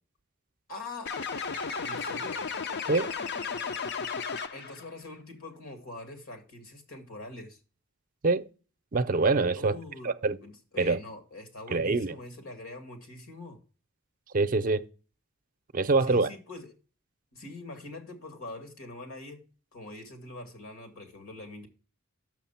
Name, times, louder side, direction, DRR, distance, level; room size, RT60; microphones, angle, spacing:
voice 1, 0.7-2.5 4.5-7.6 9.6-10.2 10.4-13.6 16.0-16.7 17.3-19.4 19.7-21.7, left 2 dB, 80° left, 2.2 m, -44 dB
sound 1, 1.1-4.8, left 5 dB, 55° left, 0.6 m, -34 dB
voice 2, 8.9-9.8 10.0-10.4 10.8-11.0 11.7-12.1 14.3-14.8 15.7-16.3, right 3 dB, 40° right, 0.5 m, -25 dB
6.7 x 6.0 x 5.7 m
head